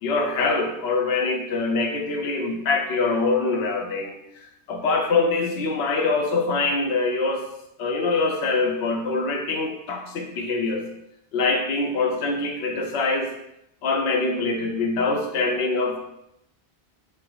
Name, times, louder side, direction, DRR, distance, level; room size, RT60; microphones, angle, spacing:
voice 1, 0.0-4.2 4.7-7.5 7.8-10.9 11.3-13.3 13.8-16.0, left 3 dB, 75° left, 1 dB, 0.9 m, -24 dB
6.5 x 3.3 x 2.3 m, 0.81 s
omnidirectional pair, 1.1 m